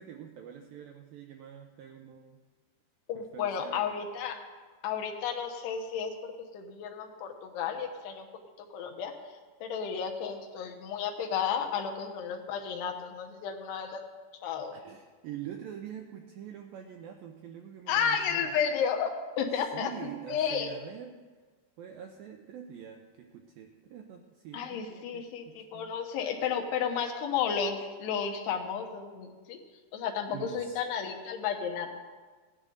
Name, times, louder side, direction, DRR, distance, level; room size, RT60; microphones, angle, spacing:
voice 1, 0.0-2.4 3.1-3.9 14.7-18.6 19.7-21.3 21.8-25.9 30.3-30.9, right 9 dB, 85° right, 4 dB, 2.0 m, -45 dB
voice 2, 3.1-4.4 4.8-8.3 8.7-9.1 9.6-14.0 14.4-14.7 17.9-19.9 20.3-20.7 24.5-29.6 29.9-32.0, left 7 dB, 80° left, 2 dB, 3.1 m, -32 dB
16.5 x 11.0 x 3.9 m, 1.4 s
omnidirectional pair, 4.9 m